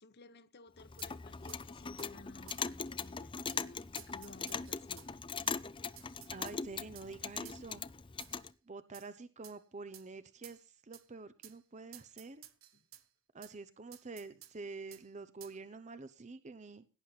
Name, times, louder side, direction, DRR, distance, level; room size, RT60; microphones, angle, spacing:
voice 1, 0.0-5.2 12.7-12.8, left 3 dB, 55° left, 1.0 m, -56 dB
Clock, 0.8-8.5, left 5 dB, 25° left, 0.5 m, -41 dB
sound 1, 1.0-1.1 1.5-1.6 2.0-2.1 2.5-2.6 3.0-3.1 3.5-3.6 4.0-5.1 5.5-5.6 6.0-6.6 7.0-7.1 7.5-7.6 8.2-8.5 8.9-9.1 9.4-9.6 9.9-10.1 10.4-10.6 10.9-11.1 11.4-11.6 11.9-13.0 13.4-13.5 13.9-14.5 14.9-15.0 15.4-15.6, right 12 dB, 90° right, 1.2 m, -54 dB
voice 2, 6.3-7.8 8.7-12.4 13.3-16.9, right 3 dB, 35° right, 0.7 m, -47 dB
17.0 x 9.3 x 4.1 m
head